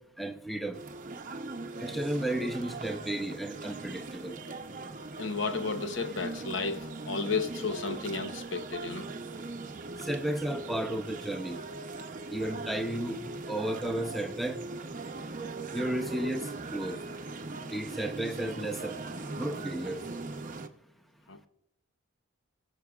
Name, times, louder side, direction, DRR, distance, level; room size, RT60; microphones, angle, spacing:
voice 1, 0.2-0.8 1.8-4.4 10.0-11.6 12.3-13.2 13.5-14.6 15.7-17.0 17.7-19.0 19.3-20.0, right 1 dB, ahead, 0.6 m, -33 dB
sound 1, 0.7-20.7, right 3 dB, 40° right, 0.7 m, -40 dB
voice 2, 5.1-9.1 21.3-21.5, left 4 dB, 65° left, 0.8 m, -33 dB
21.5 x 7.5 x 2.4 m
head